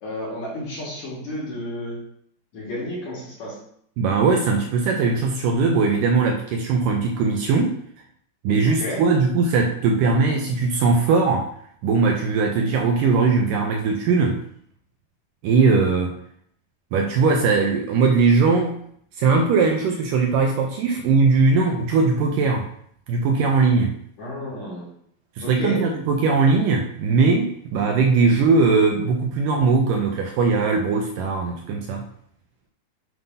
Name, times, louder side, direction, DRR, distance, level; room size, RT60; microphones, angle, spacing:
voice 1, 0.0-2.0 2.5-3.6 8.8-9.0 24.2-24.9 25.4-25.8, left 1 dB, 50° left, -5 dB, 3.4 m, -31 dB
voice 2, 4.0-7.8 8.4-11.5 11.8-14.4 15.4-16.1 16.9-18.8 19.2-22.7 23.1-23.9 25.4-32.1, right 4 dB, 80° right, 2 dB, 2.1 m, -20 dB
7.9 x 3.9 x 5.5 m, 0.66 s
omnidirectional pair, 4.3 m